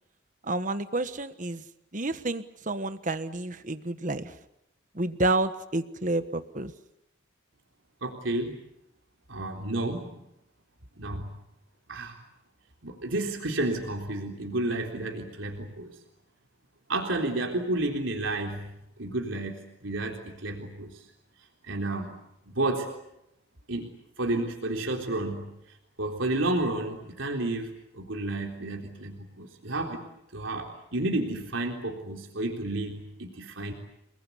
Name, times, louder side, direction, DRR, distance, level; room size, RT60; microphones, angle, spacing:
voice 1, 0.4-1.6 1.9-4.4 4.9-6.7, right 2 dB, 40° right, 10 dB, 1.3 m, -29 dB
voice 2, 8.0-8.6 9.3-10.2 11.0-11.3 11.9-12.2 12.8-16.0 16.9-18.7 19.0-21.0 21.6-22.2 22.4-22.9 23.7-23.9 24.2-25.5 26.0-30.0 30.3-33.7, right 2 dB, 85° right, 1 dB, 3.8 m, -31 dB
30.0 x 21.0 x 8.3 m, 0.84 s
head